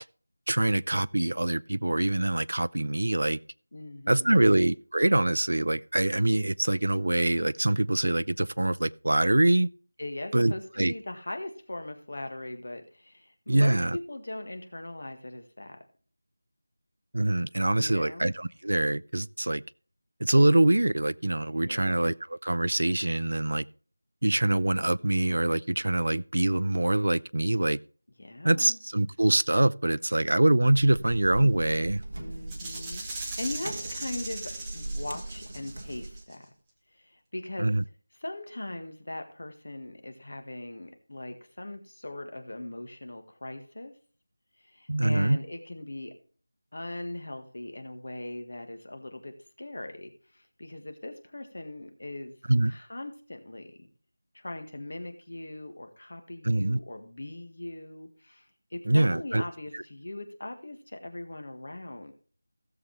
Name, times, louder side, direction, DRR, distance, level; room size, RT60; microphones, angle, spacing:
voice 1, 0.5-3.4 4.1-9.7 10.3-10.9 13.5-14.0 17.1-19.6 20.2-23.7 24.2-27.8 28.4-32.0 37.6-37.8 44.9-45.4 52.5-52.7 56.4-56.8 58.9-59.4 59.7-59.8, right 1 dB, 65° right, 0.3 m, -24 dB
voice 2, 3.7-4.6 10.0-15.8 17.8-18.3 21.6-22.0 28.2-28.8 31.0-31.2 32.2-36.5 37.0-37.7 38.2-43.9 44.6-46.1 46.7-52.4 52.7-53.9 54.3-62.1, left 1 dB, 50° left, 1.7 m, -40 dB
sound 1, 30.6-36.2, right 1 dB, 50° right, 1.3 m, -39 dB
Rattle (instrument), 32.5-36.3, right 3 dB, 5° right, 0.7 m, -39 dB
16.0 x 6.9 x 3.3 m
figure-of-eight pair, 180°, 0 cm